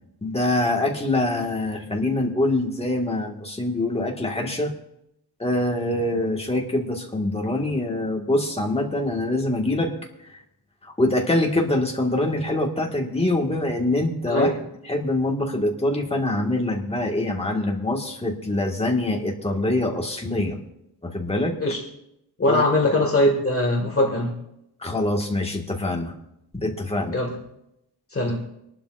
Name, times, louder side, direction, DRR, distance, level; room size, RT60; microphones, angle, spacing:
voice 1, 0.2-4.7 5.4-9.9 10.8-14.5 14.8-20.6 21.0-21.5 22.5-22.6 24.8-26.1 26.5-27.1, left 1 dB, 15° left, 1 dB, 1.7 m, -24 dB
voice 2, 22.4-24.4 27.1-27.4 28.1-28.5, left 1 dB, 30° left, -1 dB, 2.0 m, -21 dB
24.5 x 11.5 x 2.6 m, 0.83 s
wide cardioid pair, 150°, 41 cm